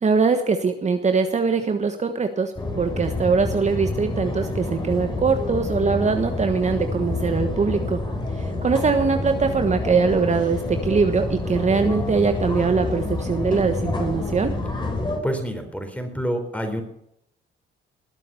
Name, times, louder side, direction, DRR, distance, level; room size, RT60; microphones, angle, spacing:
voice 1, 0.0-8.0 8.4-14.5, right 5 dB, 35° right, 7 dB, 1.3 m, -22 dB
sound 1, 2.6-15.2, left 2 dB, 25° left, 4.3 m, -28 dB
voice 2, 15.2-16.8, equal, 5° left, 5 dB, 4.0 m, -27 dB
20.0 x 7.6 x 7.0 m, 0.75 s
cardioid pair, 90°, 20 cm